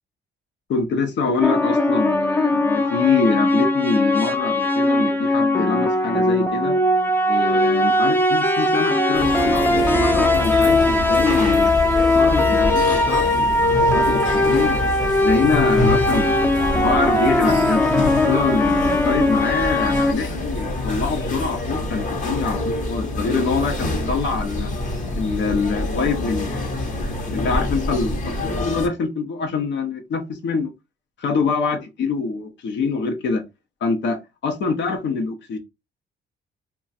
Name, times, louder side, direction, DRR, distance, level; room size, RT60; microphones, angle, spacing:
voice 1, 0.7-6.8 7.3-11.8 12.1-14.8 15.2-17.8 18.2-24.7 25.1-30.7 31.2-33.4 33.8-35.6, left 4 dB, 65° left, 0.7 m, -25 dB
sound 1, 1.4-20.1, left 1 dB, 10° left, 0.4 m, -19 dB
sound 2, 9.1-28.9, left 2 dB, 40° left, 0.9 m, -26 dB
2.3 x 2.3 x 3.9 m
cardioid pair, 90°, 20 cm